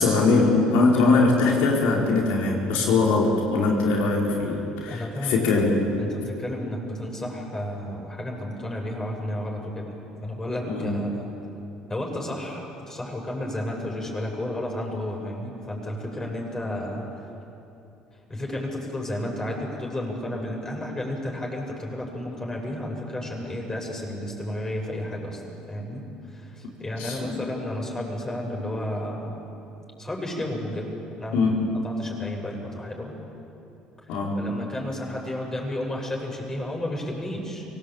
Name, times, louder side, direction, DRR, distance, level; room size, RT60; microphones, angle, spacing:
voice 1, 0.0-5.9 10.6-11.1 27.0-27.3 31.3-31.7 34.1-34.5, left 3 dB, 80° left, -2 dB, 4.7 m, -22 dB
voice 2, 4.9-5.5 6.0-11.3 11.9-17.1 18.3-25.4 25.7-26.0 26.3-29.4 30.0-31.5 31.8-33.1 34.1-37.7, left 1 dB, 20° left, 0 dB, 7.4 m, -32 dB
24.0 x 18.0 x 8.7 m, 2.9 s
supercardioid pair, 75°, 3 cm